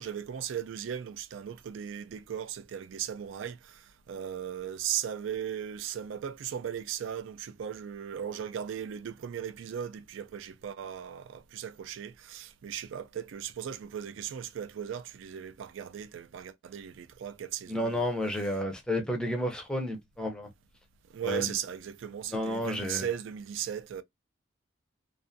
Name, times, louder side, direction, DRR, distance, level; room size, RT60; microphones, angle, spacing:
voice 1, 0.0-18.1 21.1-24.0, right 9 dB, 65° right, 0.3 m, -37 dB
voice 2, 17.7-20.5 21.2-21.5 22.3-23.1, equal, 5° left, 0.5 m, -31 dB
2.4 x 2.4 x 2.5 m
head